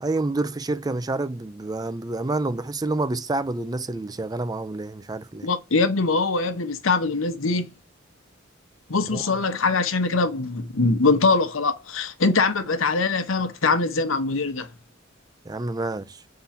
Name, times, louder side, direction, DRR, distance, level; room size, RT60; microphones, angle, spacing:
voice 1, 0.0-5.5 9.1-9.2 15.5-16.2, right 2 dB, 20° right, 0.5 m, -28 dB
voice 2, 5.4-7.7 8.9-14.7, left 3 dB, 85° left, 1.0 m, -22 dB
7.0 x 3.8 x 5.7 m
head